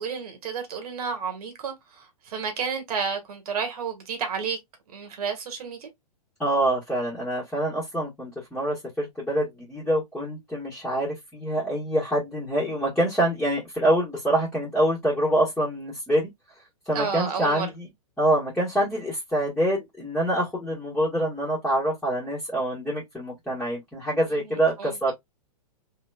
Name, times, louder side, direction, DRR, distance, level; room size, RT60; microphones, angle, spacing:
voice 1, 0.0-4.6 4.9-5.9 16.9-17.7 24.4-25.1, right 6 dB, 65° right, 1.6 m, -31 dB
voice 2, 6.4-16.3 16.8-17.9 18.2-25.1, right 1 dB, 5° left, 1.6 m, -25 dB
3.6 x 3.1 x 2.3 m
hypercardioid pair, 125°, 21 cm